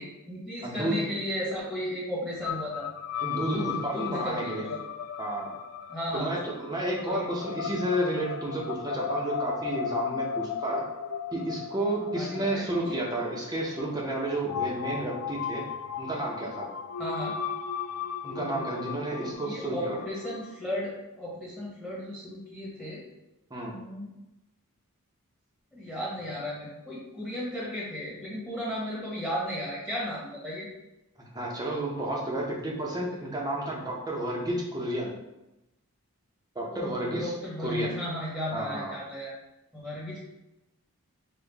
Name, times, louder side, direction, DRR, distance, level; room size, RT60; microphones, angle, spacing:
voice 1, 0.0-2.8 3.4-4.8 5.9-6.4 7.1-7.3 12.1-13.0 17.0-17.3 18.3-18.7 19.2-23.0 23.7-24.1 25.7-30.7 36.7-39.3 39.7-40.2, left 1 dB, ahead, -7 dB, 1.3 m, -35 dB
voice 2, 0.6-1.0 3.2-4.7 5.2-5.5 6.1-10.8 11.3-15.6 16.0-16.7 18.2-20.0 23.5-23.7 31.3-35.1 36.5-37.3 37.6-38.0 38.5-39.0, right 1 dB, 15° right, -2 dB, 0.8 m, -31 dB
sound 1, 2.4-20.6, left 7 dB, 70° left, 0.3 m, -36 dB
5.6 x 2.4 x 3.5 m, 0.94 s
head